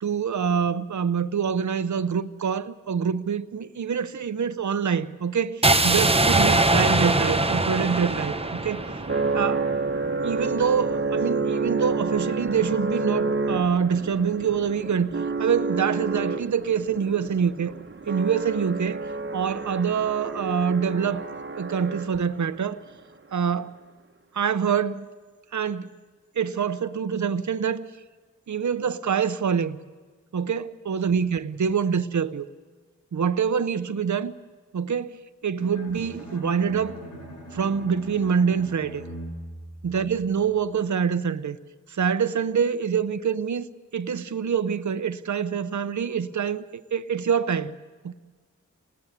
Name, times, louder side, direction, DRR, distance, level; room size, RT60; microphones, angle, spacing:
voice 1, 0.0-9.0 9.3-9.7 10.2-15.1 15.4-17.7 18.1-19.0 19.3-21.2 21.6-22.8 23.3-23.7 24.3-25.1 25.5-25.9 26.3-27.9 28.5-29.8 30.3-32.5 33.1-34.3 34.7-35.2 35.4-37.0 37.5-39.0 39.8-41.6 41.9-47.7 48.0-48.1, right 7 dB, 65° right, 0.9 m, -25 dB
sound 1, 5.6-9.7, right 2 dB, 20° right, 1.1 m, -22 dB
sound 2, 7.1-22.5, right 3 dB, 40° right, 1.3 m, -30 dB
Bowed string instrument, 35.6-40.6, right 1 dB, 85° left, 7.7 m, -41 dB
28.5 x 20.0 x 8.3 m
cardioid pair, 40°, 31 cm